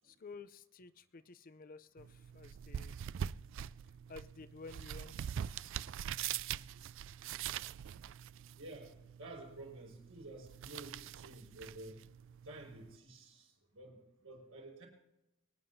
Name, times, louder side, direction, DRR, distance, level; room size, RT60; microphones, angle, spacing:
voice 1, 0.0-2.9 4.1-5.3, left 4 dB, 45° left, 13 dB, 0.5 m, -52 dB
sound 1, 2.0-13.0, right 9 dB, 65° right, 0.3 m, -44 dB
voice 2, 8.6-12.0 12.4-14.9, right 2 dB, 80° right, 0 dB, 5.4 m, -51 dB
24.5 x 9.4 x 2.7 m, 0.90 s
head